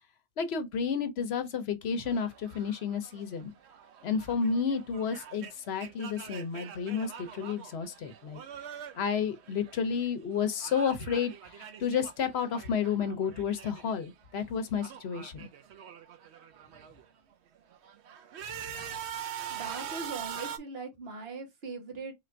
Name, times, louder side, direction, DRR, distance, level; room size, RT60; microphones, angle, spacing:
voice 1, 0.4-3.5 4.0-8.4 8.9-11.3 11.6-15.5, left 6 dB, 70° left, 1.0 m, -31 dB
sound 1, 2.1-10.1 10.3-14.1 14.4-17.0 17.6-20.6, right 8 dB, 80° right, 0.9 m, -44 dB
voice 2, 19.5-22.1, right 4 dB, 65° right, 1.4 m, -40 dB
3.5 x 2.5 x 4.4 m
omnidirectional pair, 1.1 m